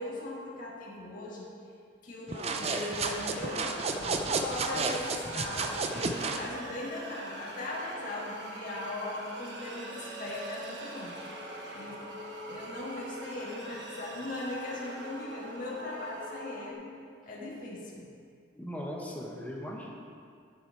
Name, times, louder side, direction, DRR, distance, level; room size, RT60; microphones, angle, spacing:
voice 1, 0.0-1.5 2.0-11.1 11.7-12.0 12.5-17.0 17.2-18.0, left 2 dB, 40° left, -5 dB, 1.7 m, -39 dB
sound 1, 2.3-6.5, right 4 dB, 30° right, 0.5 m, -32 dB
sound 2, 2.6-16.7, right 2 dB, 60° right, 1.1 m, -43 dB
voice 2, 18.6-19.9, equal, 10° left, -2 dB, 1.2 m, -38 dB
11.0 x 7.4 x 4.7 m, 2.3 s
head